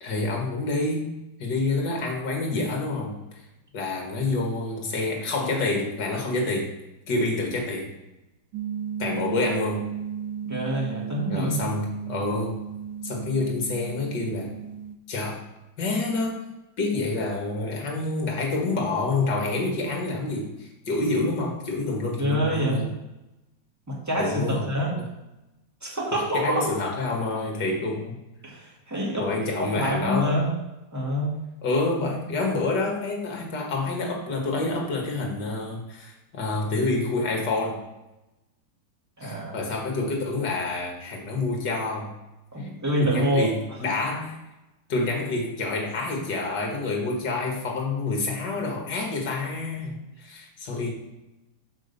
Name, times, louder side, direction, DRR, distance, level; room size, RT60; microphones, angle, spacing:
voice 1, 0.0-3.2 3.7-6.7 7.1-7.9 9.0-9.9 11.3-12.6 13.0-14.5 15.1-15.4 15.8-16.4 16.8-22.9 24.2-25.1 26.1-28.2 29.2-30.5 31.6-37.8 39.2-42.1 42.6-42.7 43.0-44.4 44.9-50.9, left 3 dB, 55° left, 0 dB, 2.2 m, -28 dB
sound 1, 8.5-15.0, right 8 dB, 75° right, 1.3 m, -34 dB
voice 2, 10.4-11.7 22.2-22.9 23.9-25.0 25.8-26.7 28.4-29.3 29.6-30.5 30.9-31.4 39.2-39.6 42.5-43.5, equal, 10° right, -4 dB, 1.8 m, -26 dB
6.1 x 5.1 x 6.8 m, 0.97 s
omnidirectional pair, 2.3 m